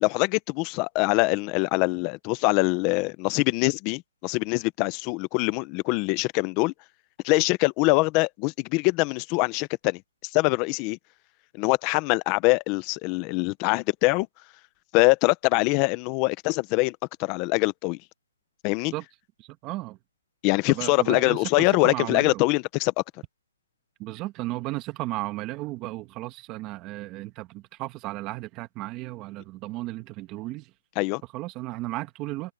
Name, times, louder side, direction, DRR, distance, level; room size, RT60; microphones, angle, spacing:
voice 1, 0.0-6.7 7.2-10.0 10.3-11.0 11.6-14.3 14.9-18.0 18.6-18.9 20.4-22.9 31.0-31.2, left 24 dB, 20° left, 0.8 m, -23 dB
voice 2, 19.4-20.0 20.7-22.4 24.0-30.7 31.3-32.5, right 18 dB, 15° right, 1.6 m, -34 dB
hypercardioid pair, 165°, 0 cm